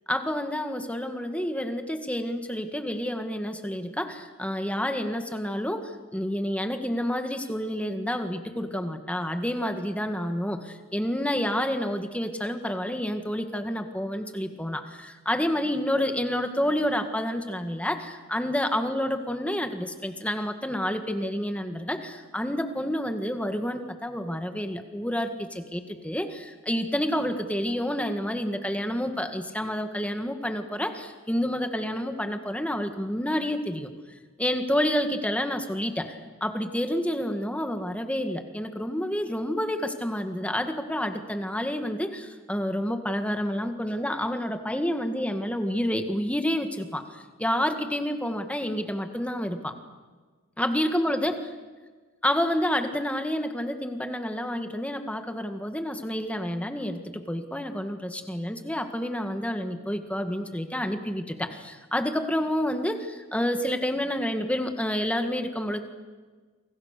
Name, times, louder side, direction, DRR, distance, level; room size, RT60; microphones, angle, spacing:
voice 1, 0.1-49.8 50.6-51.4 52.2-65.8, equal, 5° left, 7 dB, 1.8 m, -29 dB
28.5 x 25.0 x 6.7 m, 1.4 s
head